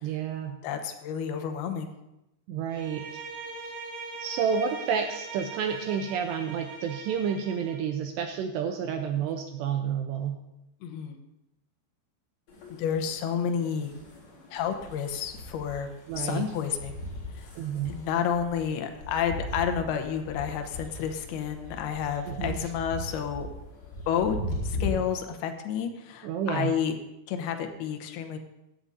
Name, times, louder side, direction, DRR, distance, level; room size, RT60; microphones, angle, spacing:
voice 1, 0.0-0.6 2.5-3.2 4.2-10.4 16.1-16.5 17.6-17.9 22.3-22.7 26.2-26.7, right 7 dB, 85° right, 5 dB, 2.5 m, -30 dB
voice 2, 0.6-1.9 9.2-9.3 10.8-11.2 12.8-13.9 14.5-17.0 17.3-17.5 17.9-23.5 24.1-24.4 24.6-27.0 27.3-28.4, left 8 dB, 75° left, 6 dB, 2.3 m, -30 dB
Bowed string instrument, 2.7-7.9, right 3 dB, 60° right, 2.5 m, -41 dB
sound 1, 12.5-24.9, left 1 dB, 35° left, 4.2 m, -39 dB
16.5 x 10.5 x 2.6 m, 0.89 s
omnidirectional pair, 5.5 m